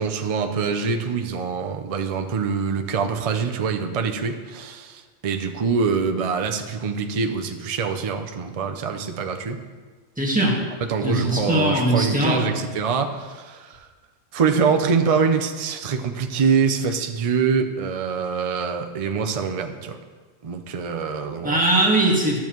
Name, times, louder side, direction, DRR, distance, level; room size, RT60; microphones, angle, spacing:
voice 1, 0.0-9.6 10.9-13.8 14.3-20.0 20.4-21.6, right 5 dB, 45° right, 5 dB, 0.4 m, -24 dB
voice 2, 10.2-10.6 11.0-12.4 21.4-22.4, right 1 dB, 5° right, -4 dB, 1.5 m, -20 dB
12.5 x 7.1 x 3.1 m, 1.4 s
omnidirectional pair, 1.4 m